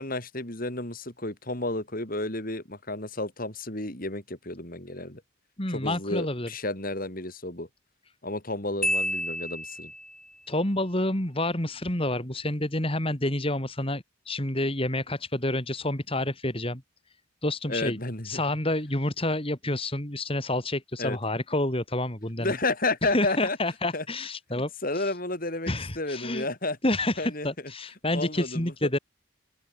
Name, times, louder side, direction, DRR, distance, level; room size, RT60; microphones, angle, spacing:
voice 1, 0.0-5.2 5.7-7.7 8.2-9.9 17.7-18.4 21.0-21.2 22.4-23.6 23.9-24.0 24.5-26.8 27.2-27.5 28.1-28.7, left 2 dB, 40° left, 3.8 m, -31 dB
voice 2, 5.6-6.5 10.5-16.8 17.4-18.0 18.2-22.5 23.1-25.1 25.7-26.5 26.8-29.0, left 1 dB, 25° left, 2.9 m, -29 dB
Marimba xylophone, 8.8-10.2, left 1 dB, 5° left, 0.4 m, -30 dB
open air
head